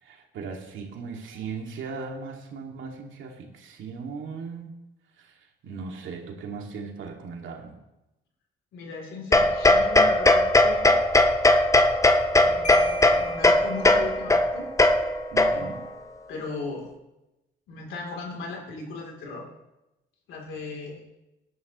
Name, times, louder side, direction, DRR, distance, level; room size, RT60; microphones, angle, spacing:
voice 1, 0.0-4.7 5.2-7.8 15.3-15.8, right 5 dB, 75° right, 1 dB, 2.4 m, -38 dB
voice 2, 8.7-10.9 12.4-14.7 15.4-15.8 16.3-16.9 17.7-19.5 20.3-21.0, left 4 dB, 80° left, 0 dB, 3.4 m, -37 dB
sound 1, 9.3-15.9, left 2 dB, 15° left, 0.9 m, -19 dB
Marimba xylophone, 12.6-14.4, equal, 40° left, 3.3 m, -40 dB
18.5 x 11.0 x 3.2 m, 0.96 s
cardioid pair, 90°, 20 cm